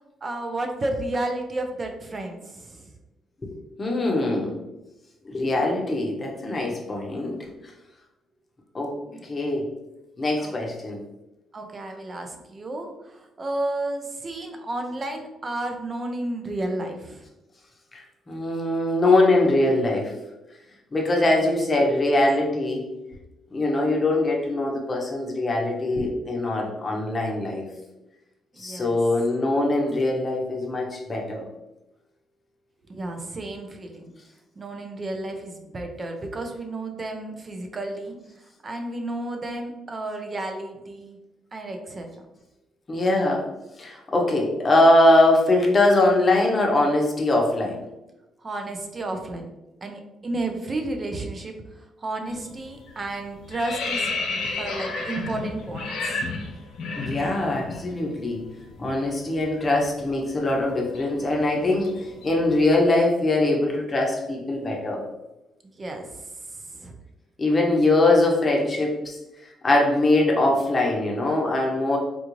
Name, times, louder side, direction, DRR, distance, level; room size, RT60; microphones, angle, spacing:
voice 1, 0.2-2.9 9.1-9.3 10.4-10.8 11.5-17.2 21.4-21.5 21.8-21.9 28.5-29.0 32.9-34.1 34.6-38.2 38.6-41.2 41.5-42.1 48.4-49.5 49.8-54.1 54.6-56.2 65.6-66.9, right 2 dB, 35° right, 4 dB, 0.6 m, -32 dB
voice 2, 3.4-4.6 5.2-7.5 8.7-9.0 9.2-9.7 10.2-11.0 18.3-20.1 20.9-22.8 23.5-27.7 28.6-31.4 42.9-43.5 43.8-47.8 57.0-58.4 58.8-61.9 62.2-65.1 67.4-69.2 69.6-72.0, left 2 dB, 30° left, 0 dB, 0.8 m, -22 dB
sound 1, 52.3-52.6 52.9-57.8 58.1-58.3 58.6-62.6, left 3 dB, 85° left, 0.8 m, -32 dB
3.7 x 2.4 x 3.0 m, 0.97 s
cardioid pair, 90°, 0 cm